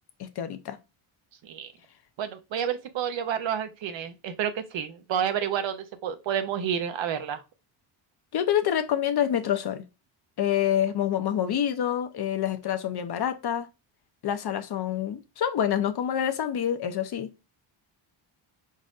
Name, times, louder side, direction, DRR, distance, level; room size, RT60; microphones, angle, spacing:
voice 1, 0.2-0.8 8.3-9.8 10.4-13.7 14.2-17.3, left 10 dB, 50° left, 0.8 m, -27 dB
voice 2, 2.2-7.4, right 8 dB, 65° right, 0.9 m, -30 dB
5.0 x 4.1 x 2.5 m
cardioid pair, 110°, 49 cm